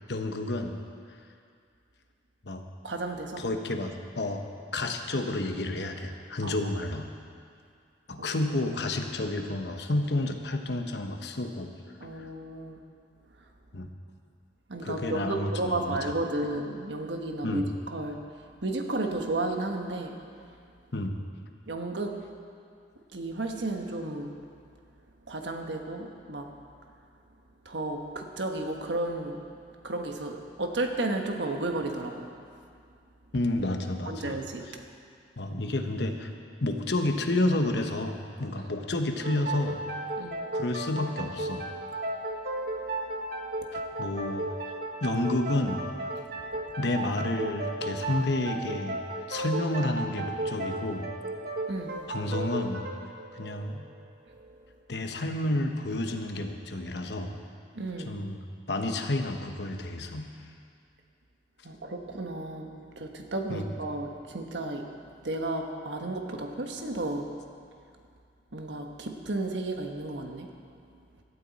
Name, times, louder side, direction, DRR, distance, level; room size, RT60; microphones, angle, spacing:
voice 1, 0.1-0.8 2.4-2.6 3.4-4.4 4.7-7.1 8.1-11.7 12.0-12.3 13.7-13.9 14.8-16.2 17.4-17.7 20.9-21.2 33.3-34.4 35.4-36.3 36.6-39.8 40.5-41.6 43.7-44.5 45.0-45.8 46.8-49.0 49.3-51.1 52.1-52.9 53.3-53.9 54.9-57.4 58.0-58.4 58.7-60.3 63.5-63.7, left 2 dB, 65° left, 5 dB, 1.1 m, -30 dB
voice 2, 2.8-3.4 6.4-6.5 8.2-8.4 12.0-12.8 14.7-18.2 18.6-20.2 21.7-22.2 23.1-24.3 25.3-26.5 27.6-29.4 29.8-32.3 34.1-34.7 40.2-40.4 51.7-51.9 57.7-58.1 61.6-62.7 63.0-64.8 65.2-67.3 68.5-70.5, right 2 dB, 75° right, 3 dB, 1.3 m, -33 dB
sound 1, 39.2-54.6, right 2 dB, 60° right, 1.2 m, -35 dB
17.0 x 12.5 x 4.2 m, 2.3 s
head